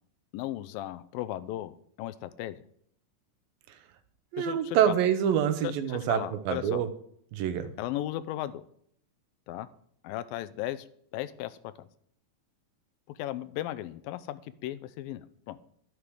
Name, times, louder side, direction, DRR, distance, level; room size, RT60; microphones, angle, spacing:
voice 1, 0.3-2.6 4.4-5.0 5.6-6.8 7.8-8.6 9.5-9.7 10.0-10.9 11.1-11.9 13.1-15.6, left 14 dB, 90° left, 15 dB, 2.4 m, -36 dB
voice 2, 4.3-6.9 7.3-7.7, right 9 dB, 85° right, 10 dB, 2.9 m, -26 dB
12.0 x 11.0 x 4.8 m, 0.65 s
omnidirectional pair, 4.0 m